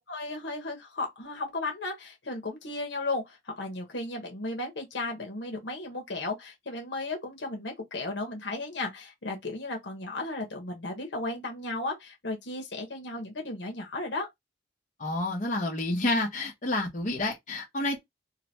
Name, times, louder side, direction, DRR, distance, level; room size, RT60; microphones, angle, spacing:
voice 1, 0.1-14.3, left 2 dB, 75° left, 1.2 m, -35 dB
voice 2, 15.0-18.0, left 2 dB, 45° left, 1.0 m, -29 dB
3.8 x 2.2 x 2.9 m
head